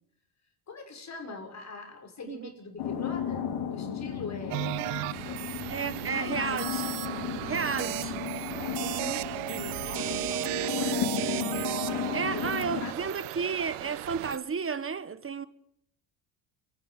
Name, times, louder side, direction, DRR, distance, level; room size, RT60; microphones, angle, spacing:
voice 1, 0.7-5.5 6.1-6.6 7.4-8.2 8.9-11.4 11.9-13.2, left 3 dB, 35° left, 6.4 m, -43 dB
sound 1, 2.8-12.9, left 8 dB, 75° left, 3.2 m, -34 dB
sound 2, 4.5-14.4, right 18 dB, 85° right, 1.1 m, -35 dB
voice 2, 5.7-6.8 7.4-8.2 8.8-9.3 12.1-15.5, right 6 dB, 25° right, 1.5 m, -32 dB
29.5 x 11.5 x 9.2 m
cardioid pair, 105°, 49 cm